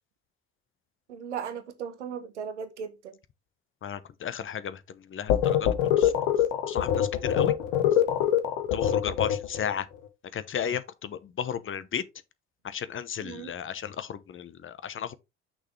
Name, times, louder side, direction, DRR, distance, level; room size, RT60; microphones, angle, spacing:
voice 1, 1.1-3.2 13.2-13.5, right 7 dB, 85° right, 1.2 m, -37 dB
voice 2, 3.8-5.7 6.0-6.1 6.7-7.5 8.7-9.9 10.3-12.0 12.6-15.1, left 8 dB, 35° left, 0.9 m, -34 dB
sound 1, 5.3-9.7, left 10 dB, 70° left, 1.3 m, -24 dB
6.2 x 5.9 x 3.3 m
hypercardioid pair, 60°, 34 cm